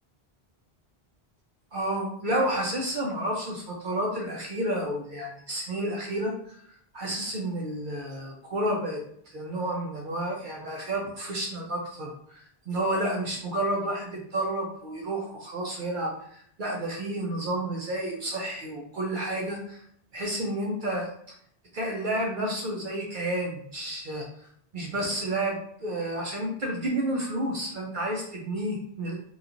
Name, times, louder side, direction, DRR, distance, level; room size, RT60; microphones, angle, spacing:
voice 1, 1.7-6.6 6.9-9.0 9.3-19.8 20.1-21.1 21.7-24.3 24.7-29.1, right 1 dB, 60° right, -1 dB, 0.6 m, -30 dB
2.9 x 2.3 x 2.4 m, 0.66 s
omnidirectional pair, 1.1 m